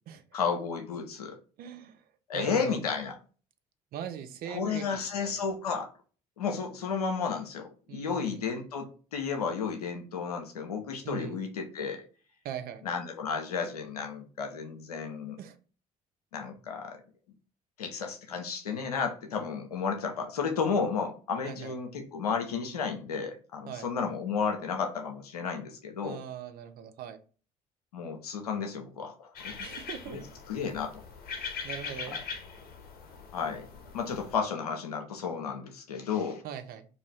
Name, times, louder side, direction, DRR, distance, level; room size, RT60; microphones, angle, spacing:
voice 1, 0.3-1.4 2.3-3.1 4.5-5.9 6.4-12.0 12.8-15.4 16.3-17.0 17.8-26.2 27.9-29.6 30.1-30.2 30.5-31.0 32.1-32.2 33.3-33.7 33.9-36.4, left 5 dB, 90° left, 5 dB, 0.5 m, -32 dB
voice 2, 1.6-2.8 3.9-5.5 7.9-8.4 11.0-11.4 12.4-12.8 15.4-15.6 21.4-21.8 23.7-23.9 26.0-27.2 29.6-30.3 31.6-32.2 36.4-36.9, right 9 dB, 55° right, 9 dB, 0.5 m, -41 dB
sound 1, 29.4-34.4, left 5 dB, 55° left, 0.8 m, -41 dB
2.5 x 2.4 x 3.2 m, 0.38 s
hypercardioid pair, 55°, 19 cm